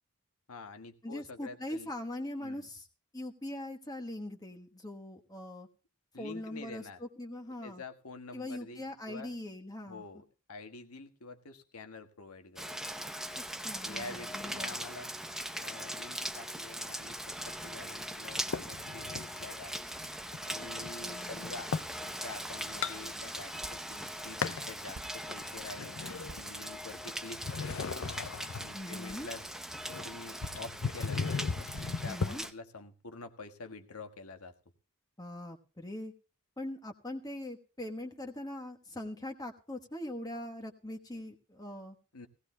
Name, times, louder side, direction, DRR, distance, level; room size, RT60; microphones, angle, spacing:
voice 1, 0.5-1.9 2.4-2.7 6.1-7.0 7.6-9.3 9.9-12.8 13.8-15.1 15.6-19.9 20.4-21.7 22.0-26.0 26.3-27.8 28.5-29.4 30.0-34.5 42.1-42.3, left 3 dB, 90° left, 7 dB, 1.6 m, -47 dB
voice 2, 1.0-2.9 3.1-5.7 6.2-7.8 8.3-10.0 13.4-14.8 21.0-21.7 28.7-29.3 32.1-32.4 35.2-36.1 36.6-42.0, left 1 dB, 15° left, 4 dB, 1.2 m, -42 dB
Rain, 12.6-32.5, equal, ahead, 0.6 m, -40 dB
sound 1, 18.5-19.5 19.9-22.0 22.4-23.7 23.9-24.8 25.3-27.0 27.3-32.3, left 5 dB, 65° left, 0.6 m, -37 dB
sound 2, 23.6-24.0 24.9-25.4 26.3-26.6 27.7-28.0 29.1-29.3 30.4-30.9 31.7-32.2, right 2 dB, 70° right, 1.0 m, -51 dB
18.0 x 16.5 x 2.2 m, 0.34 s
head